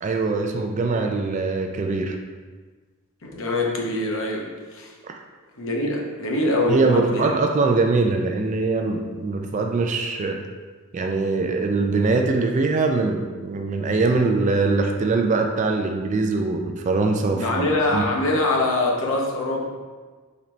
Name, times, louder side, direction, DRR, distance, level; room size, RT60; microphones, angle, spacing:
voice 1, 0.0-2.2 5.0-5.1 6.7-10.4 10.9-17.7 17.9-18.0, right 3 dB, 35° right, 3 dB, 0.3 m, -22 dB
voice 2, 3.2-4.5 4.7-4.9 5.6-7.3 17.3-19.7, left 2 dB, 65° left, -1 dB, 0.8 m, -23 dB
3.9 x 3.1 x 4.4 m, 1.4 s
head